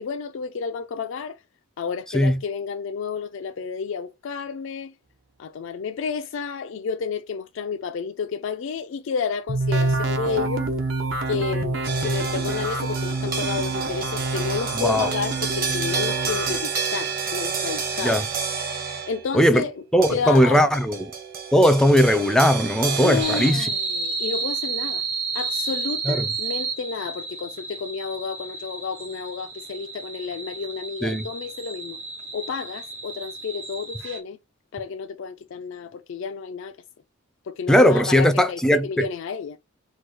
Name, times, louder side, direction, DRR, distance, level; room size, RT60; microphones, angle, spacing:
voice 1, 0.0-1.4 1.8-4.9 5.4-10.7 11.3-18.2 19.1-19.7 20.1-20.7 23.0-25.0 25.3-32.0 32.3-34.4 34.7-36.8 37.5-39.6, left 6 dB, 65° left, 0.4 m, -31 dB
sound 1, 9.5-16.6, right 2 dB, 70° right, 1.0 m, -27 dB
sound 2, 11.8-19.3 20.0-23.5, right 5 dB, 45° right, 1.2 m, -30 dB
voice 2, 14.7-15.1 18.0-18.2 19.3-19.6 19.9-21.1 21.5-23.7 26.1-26.3 31.0-31.3 37.7-39.1, equal, 5° left, 0.4 m, -18 dB
sound 3, 23.2-34.2, right 4 dB, 85° right, 1.9 m, -31 dB
4.5 x 2.3 x 4.5 m
head